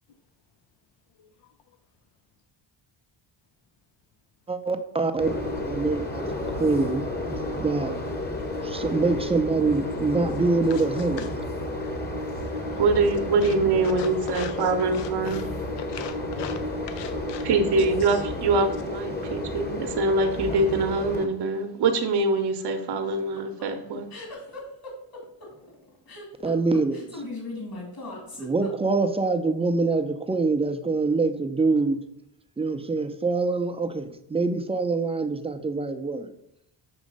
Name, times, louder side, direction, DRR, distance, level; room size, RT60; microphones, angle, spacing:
voice 1, 4.5-7.0 7.6-8.0 8.6-11.3 26.4-27.2 28.4-32.0 32.6-36.3, right 3 dB, 15° right, 7 dB, 0.4 m, -25 dB
sound 1, 5.2-21.3, left 1 dB, 20° left, 1.0 m, -32 dB
voice 2, 10.7-11.1 12.6-12.8 13.4-13.5 14.0-14.6 14.9-15.5 15.8-16.6 16.9-17.4 18.1-18.2, left 8 dB, 70° left, 9 dB, 0.6 m, -39 dB
voice 3, 12.8-15.4 17.4-24.1, right 3 dB, 60° right, 6 dB, 0.8 m, -24 dB
sound 2, 22.9-29.2, left 2 dB, 50° left, 2.2 m, -39 dB
6.2 x 3.1 x 5.2 m, 0.77 s
cardioid pair, 95°, 46 cm